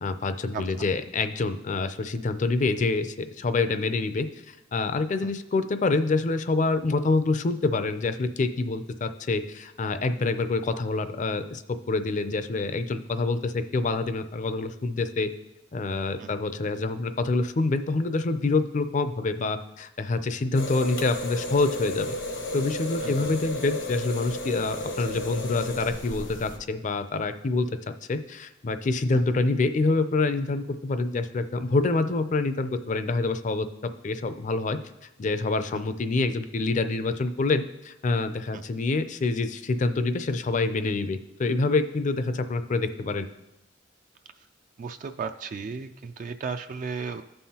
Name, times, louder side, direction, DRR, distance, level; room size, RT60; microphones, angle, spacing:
voice 1, 0.0-11.6 11.9-15.3 15.7-22.1 22.5-27.7 28.1-33.7 34.0-34.8 35.2-43.2, left 3 dB, 40° left, 10 dB, 0.5 m, -26 dB
sound 1, 20.5-26.6, left 1 dB, 85° left, 1.1 m, -33 dB
voice 2, 44.8-47.2, right 5 dB, 45° right, 8 dB, 0.3 m, -35 dB
14.5 x 5.5 x 2.9 m, 0.93 s
head